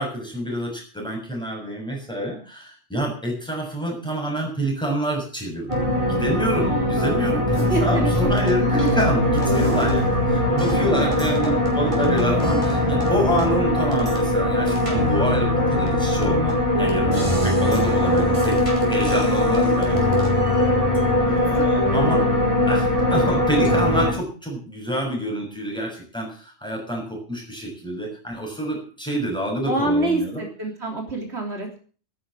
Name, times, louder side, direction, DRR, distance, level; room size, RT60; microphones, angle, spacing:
voice 1, 0.0-18.6 18.9-20.2 20.5-20.7 21.2-22.2 22.7-30.5, equal, 5° left, 0 dB, 6.8 m, -27 dB
sound 1, 5.7-24.1, left 1 dB, 25° right, 5.2 m, -20 dB
voice 2, 6.5-7.0 7.5-8.3 11.0-11.2 11.4-11.6 17.6-17.8 18.0-18.2 21.2-21.7 29.7-31.8, right 2 dB, 70° right, 1 dB, 3.7 m, -27 dB
13.0 x 10.5 x 7.6 m, 0.41 s
omnidirectional pair, 1.2 m